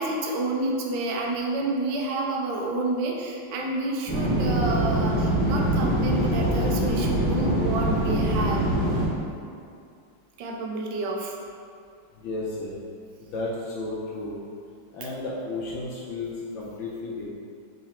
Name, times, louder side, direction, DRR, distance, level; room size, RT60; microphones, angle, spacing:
voice 1, 0.0-8.6 10.4-11.4, right 2 dB, 75° right, 0 dB, 1.1 m, -29 dB
sound 1, 4.1-9.1, right 1 dB, 10° left, 0.9 m, -24 dB
voice 2, 12.1-12.7 13.2-14.4 14.9-17.3, left 2 dB, 75° left, -6 dB, 1.3 m, -33 dB
3.9 x 3.0 x 4.2 m, 2.3 s
omnidirectional pair, 2.3 m